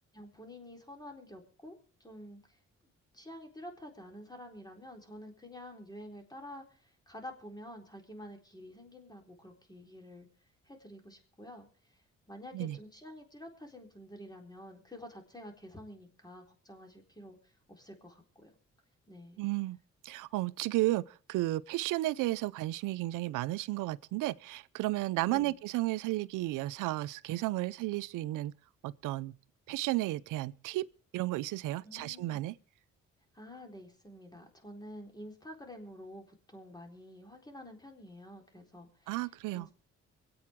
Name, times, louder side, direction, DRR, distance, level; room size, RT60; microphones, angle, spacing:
voice 1, 0.1-2.6 3.1-10.3 10.7-12.0 12.3-18.5 19.1-19.4 25.3-25.5 31.8-32.4 33.3-39.2 39.5-39.7, left 1 dB, 15° left, 4.0 m, -49 dB
voice 2, 19.4-19.8 20.0-28.5 28.8-29.3 29.7-30.8 31.1-32.5 39.1-39.7, right 18 dB, 90° right, 0.5 m, -33 dB
25.0 x 8.6 x 3.6 m
supercardioid pair, 65°, 30 cm